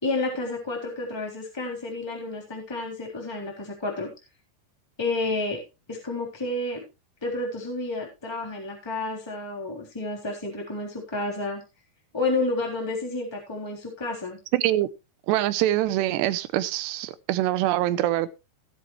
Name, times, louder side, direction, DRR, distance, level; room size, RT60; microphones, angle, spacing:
voice 1, 0.0-4.1 5.0-5.6 5.9-6.8 7.2-11.6 12.1-14.4, left 2 dB, 5° left, 3.1 m, -30 dB
voice 2, 14.5-14.9 15.3-18.3, right 14 dB, 85° right, 3.0 m, -24 dB
17.5 x 8.0 x 3.2 m
omnidirectional pair, 4.8 m